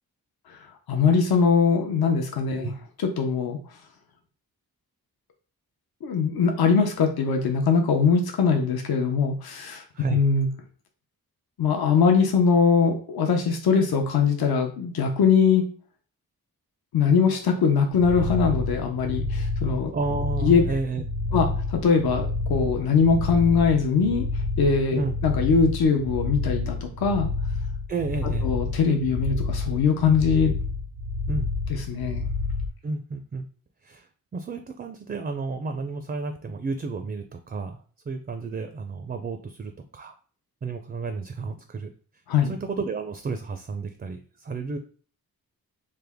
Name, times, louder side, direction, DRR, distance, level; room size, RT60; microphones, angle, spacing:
voice 1, 0.9-2.7 3.0-3.6 6.0-9.8 10.1-10.5 11.6-15.6 16.9-19.9 20.4-20.6 21.3-24.2 24.6-27.3 28.2-30.5 31.7-32.2 42.3-42.5, left 5 dB, 75° left, 3 dB, 0.7 m, -22 dB
sound 1, 17.9-32.7, left 2 dB, 80° right, 0.8 m, -29 dB
voice 2, 19.9-21.0 21.3-21.5 24.9-25.1 27.9-28.5 31.3-31.5 32.8-33.5 33.8-37.8 38.1-40.1 40.6-41.9 42.4-44.8, right 4 dB, 25° right, 7 dB, 0.4 m, -31 dB
3.4 x 2.1 x 3.4 m, 0.43 s
cardioid pair, 60°, 37 cm